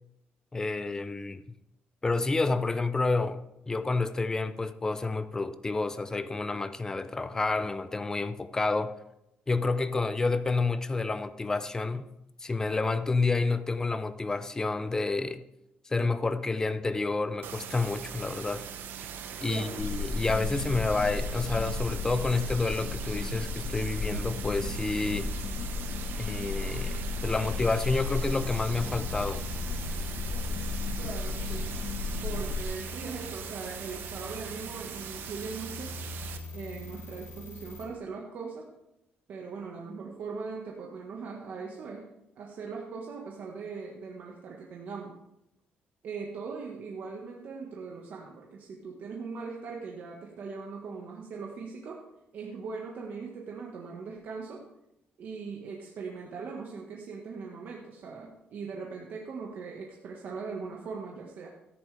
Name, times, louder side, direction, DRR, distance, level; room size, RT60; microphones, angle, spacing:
voice 1, 0.5-1.4 2.0-3.4 3.7-8.9 9.5-12.1 12.4-15.4 15.9-18.6 19.4-25.3 26.2-29.4, left 3 dB, 15° left, 0.5 m, -29 dB
sound 1, 17.4-36.4, right 8 dB, 70° right, 1.0 m, -41 dB
voice 2, 19.4-19.9 30.9-31.8 32.2-35.9 36.5-38.7 39.3-42.1 42.3-45.1 46.0-52.0 52.3-54.6 55.2-61.5, right 4 dB, 55° right, 1.4 m, -40 dB
sound 2, 19.8-32.6, left 3 dB, 45° left, 0.9 m, -34 dB
sound 3, 28.1-37.8, left 2 dB, 70° left, 4.7 m, -44 dB
13.5 x 10.5 x 3.4 m
cardioid pair, 160°, 4 cm